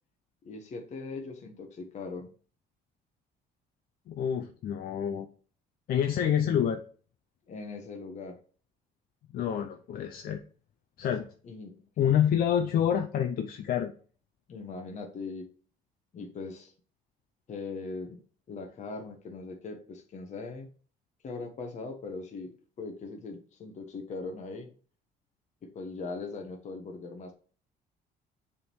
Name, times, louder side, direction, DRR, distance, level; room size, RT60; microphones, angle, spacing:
voice 1, 0.4-2.3 7.5-8.4 11.4-11.7 14.5-15.5 16.1-16.7 17.5-18.2 18.5-20.7 21.2-24.7 25.6-27.3, left 3 dB, 45° left, 3 dB, 1.2 m, -40 dB
voice 2, 4.1-5.3 5.9-6.8 9.3-10.4 11.0-11.3 12.0-13.9, left 9 dB, 60° left, 6 dB, 0.7 m, -27 dB
6.7 x 3.7 x 4.6 m, 0.41 s
cardioid pair, 110°, 17 cm